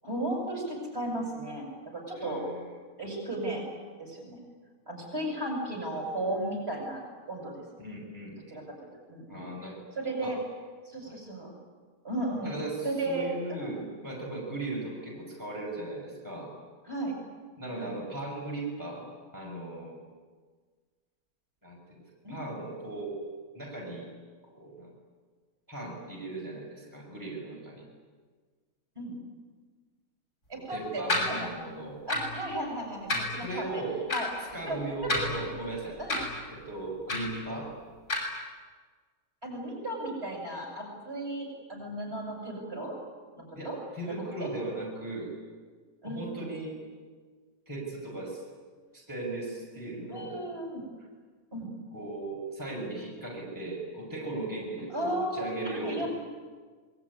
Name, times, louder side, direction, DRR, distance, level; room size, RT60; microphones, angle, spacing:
voice 1, 0.0-2.4 3.0-3.6 4.0-4.4 4.9-7.0 7.3-7.6 8.5-8.6 9.1-9.5 10.0-10.4 10.9-11.5 12.0-12.5 12.8-13.8 16.9-17.2 17.7-17.9 22.2-22.3 29.0-29.2 30.5-31.5 32.1-33.8 34.1-34.3 34.6-34.8 35.4-35.5 36.0-36.2 39.4-42.9 43.4-43.8 44.1-44.5 46.0-46.4 50.1-50.8 51.5-51.7 54.9-56.1, right 1 dB, 40° right, 0 dB, 7.8 m, -35 dB
voice 2, 2.1-2.7 7.8-8.6 9.3-9.8 10.2-10.4 11.0-11.1 12.4-16.5 17.6-19.1 19.3-20.0 21.6-22.0 22.3-23.2 23.5-24.1 24.5-24.9 25.7-27.8 30.5-32.0 33.4-34.0 34.5-36.0 36.5-37.7 43.6-45.3 46.0-46.7 47.7-48.4 48.9-50.4 51.9-56.1, right 2 dB, 10° right, -3 dB, 6.1 m, -37 dB
sound 1, 31.1-31.3 32.1-32.3 33.1-33.3 34.1-34.2 35.0-35.6 36.1-36.3 37.1-37.3 38.1-38.2, left 2 dB, 90° left, 8.1 m, -29 dB
26.5 x 22.0 x 9.8 m, 1.5 s
omnidirectional pair, 1.6 m